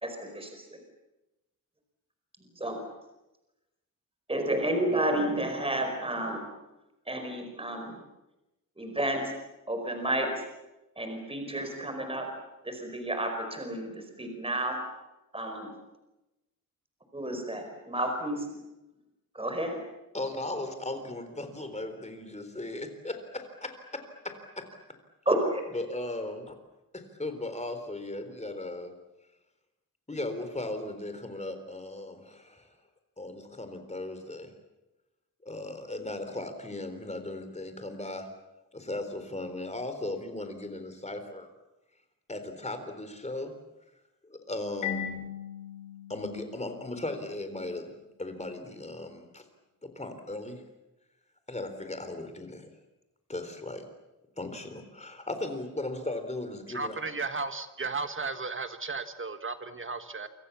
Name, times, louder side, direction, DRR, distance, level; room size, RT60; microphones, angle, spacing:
voice 1, 0.0-0.8 2.6-2.8 4.3-6.4 7.1-7.9 8.8-9.2 9.7-10.4 11.0-12.3 12.6-14.8 15.3-15.7 17.1-18.5 19.3-19.8 25.2-25.6, right 1 dB, 15° right, 4 dB, 4.9 m, -31 dB
voice 2, 20.1-24.6 25.7-26.6 26.9-28.9 30.1-32.7 33.2-34.5 35.4-38.3 38.7-41.5 42.3-43.5 44.3-45.2 46.1-47.9 48.2-49.4 49.8-50.6 51.5-52.8 53.3-53.8 54.4-57.0, left 2 dB, 20° left, 8 dB, 4.0 m, -37 dB
Marimba xylophone, 44.8-47.5, left 8 dB, 60° left, 4.2 m, -38 dB
voice 3, 56.7-60.3, right 4 dB, 35° right, 9 dB, 1.5 m, -34 dB
28.5 x 25.5 x 7.2 m, 0.99 s
wide cardioid pair, 145°, 33 cm